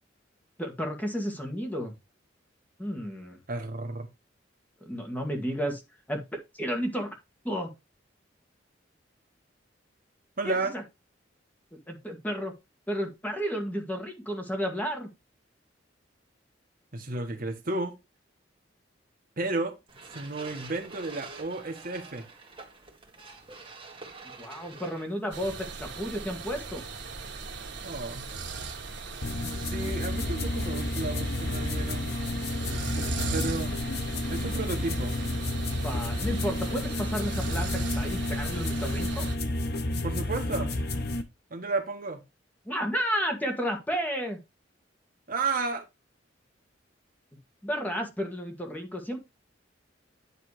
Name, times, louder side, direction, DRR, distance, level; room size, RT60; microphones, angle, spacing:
voice 1, 0.6-1.9 2.8-3.4 4.8-5.8 6.1-7.1 7.4-7.7 10.4-10.8 11.7-12.5 12.9-15.1 24.4-26.8 29.4-29.5 35.7-39.3 42.6-44.4 47.6-49.2, equal, 10° left, 1.6 m, -32 dB
voice 2, 3.5-4.1 10.4-10.7 16.9-17.9 19.4-19.8 20.1-22.2 27.8-28.3 29.5-32.1 33.3-33.7 34.3-35.2 40.0-40.8 41.5-42.2 45.3-45.8, right 3 dB, 50° right, 1.4 m, -32 dB
sound 1, 19.9-25.4, right 4 dB, 30° right, 1.7 m, -47 dB
sound 2, 25.3-39.4, right 4 dB, 65° right, 1.7 m, -39 dB
sound 3, 29.2-41.2, left 1 dB, 60° left, 1.0 m, -30 dB
9.7 x 3.3 x 4.8 m
head